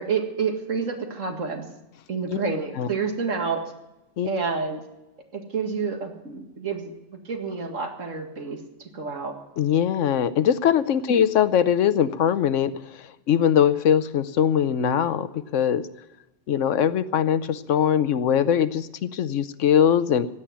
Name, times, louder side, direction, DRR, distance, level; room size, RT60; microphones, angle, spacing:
voice 1, 0.0-1.7 2.1-3.6 4.3-4.8 5.3-9.4 11.1-11.2, right 5 dB, 90° right, 5 dB, 2.3 m, -29 dB
voice 2, 9.6-15.8 16.5-20.3, left 9 dB, 75° left, 15 dB, 1.1 m, -21 dB
16.5 x 8.8 x 9.9 m, 0.96 s
omnidirectional pair, 1.3 m